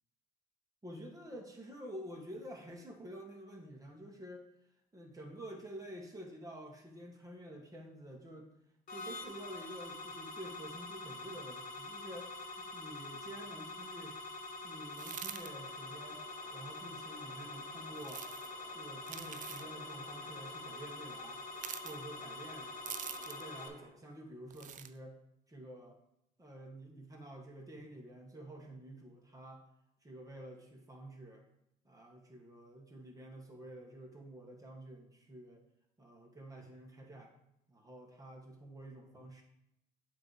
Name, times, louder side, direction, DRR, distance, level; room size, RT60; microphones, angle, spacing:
voice 1, 0.8-4.5 4.9-8.5 8.9-14.2 14.6-16.2 16.5-18.3 18.7-21.4 21.8-22.7 23.2-25.2 25.5-26.0 26.4-29.6 30.0-31.4 31.8-35.6 36.0-37.3 37.7-39.4, right 1 dB, 20° right, 0 dB, 1.7 m, -49 dB
sound 1, 8.9-23.7, left 2 dB, 55° left, 1.0 m, -45 dB
sound 2, 14.9-15.5 18.0-18.5 19.0-19.7 21.6-22.0 22.9-23.5 24.5-24.9, right 9 dB, 50° right, 0.4 m, -44 dB
sound 3, 15.3-23.9, left 2 dB, 30° left, 2.2 m, -59 dB
7.6 x 3.1 x 4.9 m, 0.79 s
supercardioid pair, 70°, 17 cm